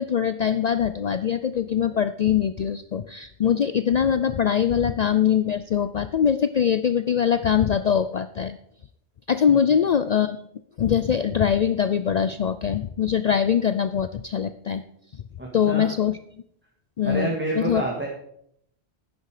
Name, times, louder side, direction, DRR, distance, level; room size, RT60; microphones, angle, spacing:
voice 1, 0.0-8.6 9.3-10.4 10.8-14.8 15.5-16.2 17.0-17.3 17.6-17.8, left 8 dB, 55° left, 12 dB, 0.5 m, -22 dB
voice 2, 15.4-15.9 17.0-18.1, right 1 dB, 10° right, -2 dB, 1.9 m, -28 dB
11.0 x 9.6 x 4.9 m, 0.70 s
omnidirectional pair, 1.1 m